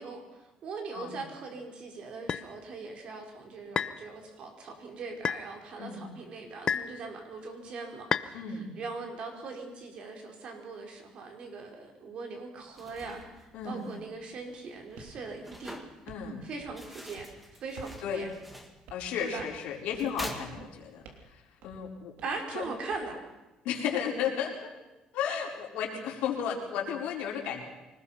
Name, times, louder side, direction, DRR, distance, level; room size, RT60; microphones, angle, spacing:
voice 1, 0.0-15.8 16.4-17.3 17.6-18.3 19.2-19.5 22.2-23.2, right 4 dB, 50° right, 2 dB, 5.0 m, -40 dB
sound 1, 2.3-2.5 3.8-4.0 5.2-5.5 6.7-7.0 8.1-8.3, left 7 dB, 35° left, 0.8 m, -30 dB
voice 2, 8.3-8.7 13.5-13.9 16.1-16.4 18.0-18.2 18.9-21.0 21.3-22.1 22.5-22.6 23.6-24.7 25.1-27.6, left 7 dB, 80° left, -1 dB, 4.8 m, -34 dB
sound 2, 12.6-21.2, equal, 5° right, 2.0 m, -47 dB
sound 3, 15.0-15.2 15.5-16.3 16.6-16.9 17.2-17.4 17.8-18.0 18.3-18.4 18.9-19.1 19.4-19.7 19.9-20.2 20.5-20.7 21.0-21.3 21.6-21.8 22.2-23.1, right 4 dB, 85° right, 3.3 m, -51 dB
25.0 x 20.0 x 5.9 m, 1.1 s
cardioid pair, 140°, 2 cm